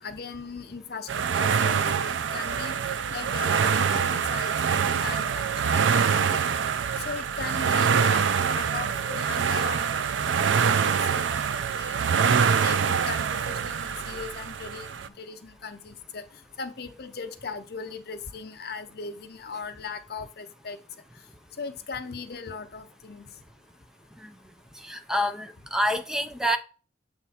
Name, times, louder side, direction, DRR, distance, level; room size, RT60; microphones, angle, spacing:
voice 1, 0.0-2.8 3.1-6.4 7.0-9.9 10.2-11.2 11.7-12.0 12.6-14.9 15.2-16.2 16.6-20.8 21.6-23.2, left 4 dB, 60° left, 0.7 m, -38 dB
sound 1, 1.1-15.1, right 6 dB, 85° right, 0.4 m, -25 dB
voice 2, 24.8-26.6, equal, 5° right, 0.5 m, -27 dB
7.1 x 3.4 x 4.2 m
head